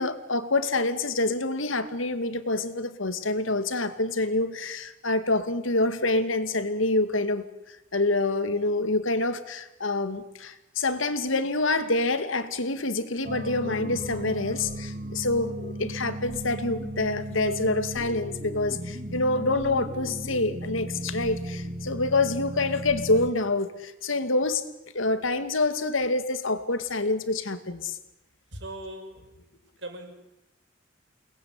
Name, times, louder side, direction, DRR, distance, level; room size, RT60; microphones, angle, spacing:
voice 1, 0.0-24.6 24.9-28.0, left 2 dB, 80° left, 11 dB, 2.3 m, -27 dB
sound 1, 13.2-23.3, right 1 dB, 40° right, 2.5 m, -36 dB
voice 2, 28.5-29.3 29.8-30.1, right 1 dB, 60° right, 5 dB, 5.9 m, -39 dB
29.0 x 20.5 x 9.7 m, 0.95 s
head